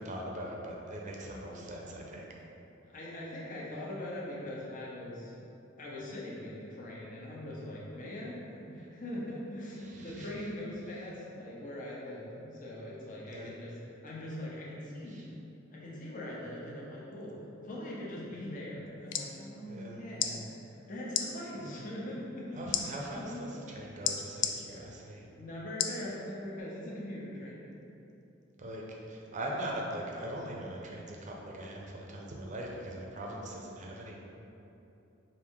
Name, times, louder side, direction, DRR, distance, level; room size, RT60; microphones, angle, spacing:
voice 1, 0.0-2.3 9.9-10.3 13.3-13.6 19.7-20.0 21.6-21.8 22.6-25.2 28.6-34.2, right 1 dB, 40° right, -1 dB, 0.6 m, -41 dB
voice 2, 1.5-2.0 2.9-5.3 5.8-13.8 14.0-15.3 15.7-17.3 17.6-23.4 25.4-27.6 33.2-33.6, left 1 dB, 45° left, -5 dB, 0.7 m, -41 dB
sound 1, 18.9-19.3 20.1-20.3 21.1-21.3 22.7-22.8 24.0-24.5 25.8-26.0 26.6-26.7, left 9 dB, 65° left, 0.3 m, -30 dB
4.8 x 2.6 x 3.6 m, 2.9 s
head